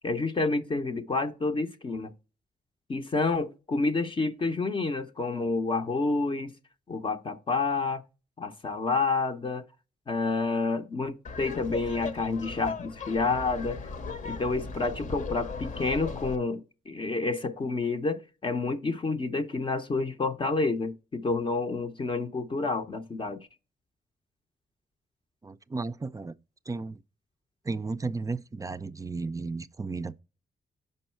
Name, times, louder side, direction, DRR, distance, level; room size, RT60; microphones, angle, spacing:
voice 1, 0.0-2.1 2.9-6.5 6.9-8.0 8.4-9.6 10.1-13.8 14.2-23.5, left 3 dB, 35° left, 0.6 m, -29 dB
Laughter, 11.2-16.3, left 4 dB, 55° left, 0.9 m, -37 dB
voice 2, 25.4-26.4 26.7-27.0 27.6-30.2, right 3 dB, 20° right, 0.4 m, -34 dB
5.4 x 5.2 x 4.4 m
cardioid pair, 85°, 16 cm